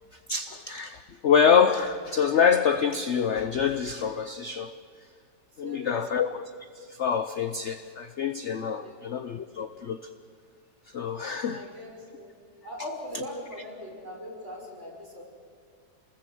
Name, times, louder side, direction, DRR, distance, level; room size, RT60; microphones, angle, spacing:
voice 1, 0.3-4.7 5.6-6.4 6.8-10.1 10.9-11.7, left 7 dB, 55° left, 10 dB, 0.8 m, -26 dB
voice 2, 5.5-6.3 8.8-9.1 11.5-12.3 12.6-15.2, equal, 40° right, -3 dB, 5.9 m, -41 dB
27.5 x 20.5 x 7.8 m, 2.2 s
omnidirectional pair, 1.9 m